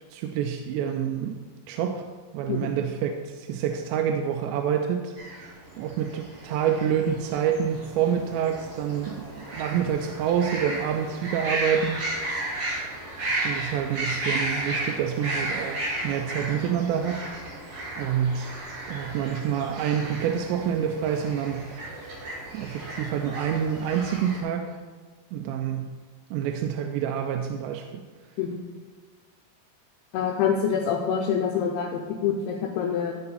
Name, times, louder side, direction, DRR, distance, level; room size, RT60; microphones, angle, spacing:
voice 1, 0.1-1.4 1.7-2.0 2.3-12.0 12.3-12.4 13.3-17.2 18.0-18.5 18.9-22.2 22.5-24.8 25.3-25.9 26.3-28.0, right 8 dB, 85° right, 4 dB, 2.7 m, -27 dB
sound 1, 5.2-24.4, right 1 dB, 50° right, 2.3 m, -34 dB
voice 2, 30.1-33.1, left 7 dB, 80° left, 1 dB, 2.3 m, -26 dB
12.5 x 4.8 x 4.0 m, 1.5 s
omnidirectional pair, 5.0 m